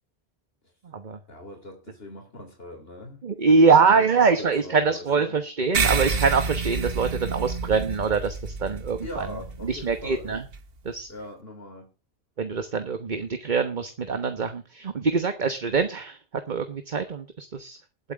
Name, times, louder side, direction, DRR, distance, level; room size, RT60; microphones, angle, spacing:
voice 1, 1.3-3.2 3.5-5.4 9.0-10.3 11.1-11.9, left 1 dB, 65° left, 3 dB, 3.7 m, -41 dB
voice 2, 3.2-9.3 9.6-10.4 10.8-11.1 12.4-16.2 16.5-17.8, right 5 dB, 45° right, 9 dB, 1.2 m, -24 dB
sound 1, 5.7-10.6, right 4 dB, 65° right, 1.4 m, -29 dB
20.0 x 8.2 x 3.5 m, 0.32 s
omnidirectional pair, 1.1 m